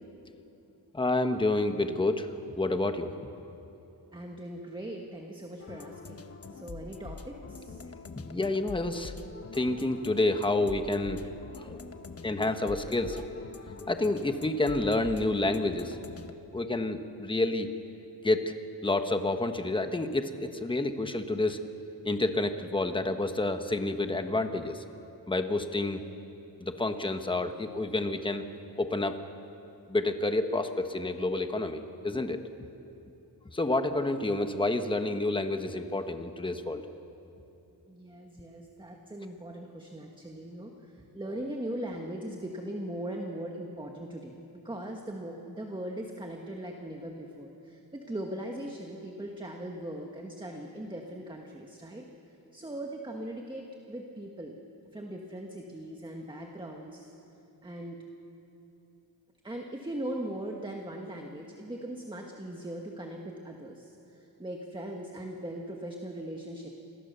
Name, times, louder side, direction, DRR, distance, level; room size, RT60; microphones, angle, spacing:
voice 1, 0.9-3.1 8.2-11.2 11.6-11.8 12.2-13.5 13.8-16.0 16.5-17.7 18.2-18.5 18.8-21.6 22.0-24.8 25.3-26.0 26.6-28.4 28.8-29.2 29.9-32.4 33.5-36.8, left 2 dB, 10° left, 7 dB, 1.2 m, -29 dB
voice 2, 4.1-6.2 6.5-7.8 37.9-52.0 52.5-54.5 54.9-57.1 57.6-58.0 59.4-66.7, right 1 dB, 10° right, 1 dB, 1.7 m, -40 dB
sound 1, 5.6-16.3, left 4 dB, 35° left, 1.1 m, -45 dB
29.0 x 22.5 x 6.9 m, 2.9 s
wide cardioid pair, 150°, 40 cm